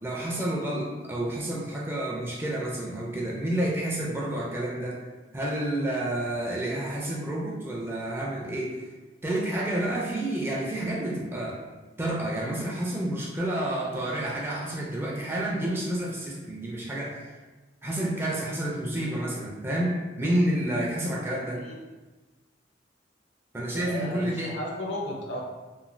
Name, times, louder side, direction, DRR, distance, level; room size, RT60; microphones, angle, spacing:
voice 1, 0.0-5.0 5.3-8.8 9.2-11.6 12.0-17.3 17.8-21.6 23.5-24.6, right 1 dB, 10° right, -4 dB, 0.4 m, -29 dB
voice 2, 23.7-25.4, left 1 dB, 65° left, -2 dB, 0.6 m, -34 dB
3.0 x 2.3 x 2.5 m, 1.2 s
head